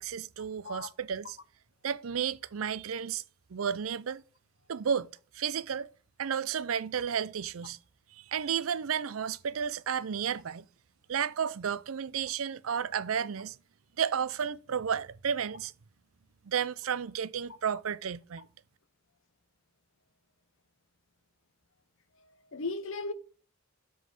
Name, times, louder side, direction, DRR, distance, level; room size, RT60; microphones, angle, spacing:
voice 1, 0.0-1.4 1.8-3.2 3.5-4.2 4.7-5.1 5.3-5.9 6.2-7.8 8.1-10.7 11.1-13.6 14.0-15.7 16.4-18.5, right 7 dB, 85° right, 0.5 m, -32 dB
voice 2, 22.2-23.1, left 3 dB, 70° left, 0.9 m, -37 dB
7.5 x 3.9 x 6.4 m
head